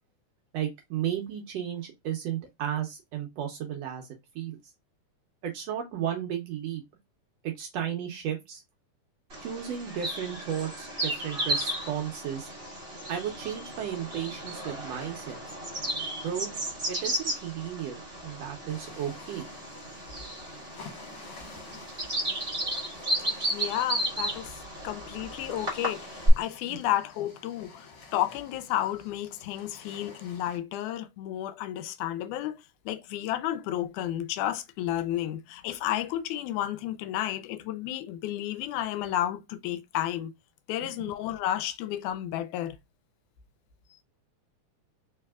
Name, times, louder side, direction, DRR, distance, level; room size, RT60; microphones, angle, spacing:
voice 1, 0.5-4.1 4.3-4.6 5.4-6.8 7.4-8.6 9.4-12.5 13.1-15.4 16.2-16.5 16.9-19.5 26.7-26.8 40.8-40.9, right 9 dB, 70° right, 1.6 m, -34 dB
Bird vocalization bird call bird song, 9.3-26.3, right 1 dB, 45° right, 0.7 m, -34 dB
sound 1, 18.7-30.6, left 4 dB, 55° left, 1.9 m, -51 dB
voice 2, 23.5-27.9 28.1-40.3 40.7-42.8, left 12 dB, 80° left, 1.9 m, -32 dB
4.5 x 3.3 x 2.2 m
omnidirectional pair, 3.7 m